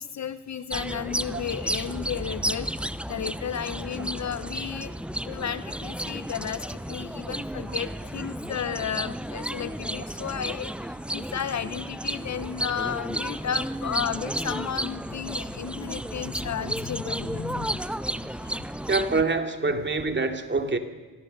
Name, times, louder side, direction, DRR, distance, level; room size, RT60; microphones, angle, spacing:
voice 1, 0.0-2.7 3.1-4.9 5.2-17.9 18.4-18.6 19.6-19.8 20.7-20.8, left 8 dB, 40° left, 0.9 m, -33 dB
park loud bird and nearby conversations Madrid Spain, 0.7-19.2, right 1 dB, 5° right, 0.7 m, -33 dB
voice 2, 18.9-20.8, right 3 dB, 25° right, 2.6 m, -25 dB
24.0 x 16.5 x 6.7 m
hypercardioid pair, 55°, 42 cm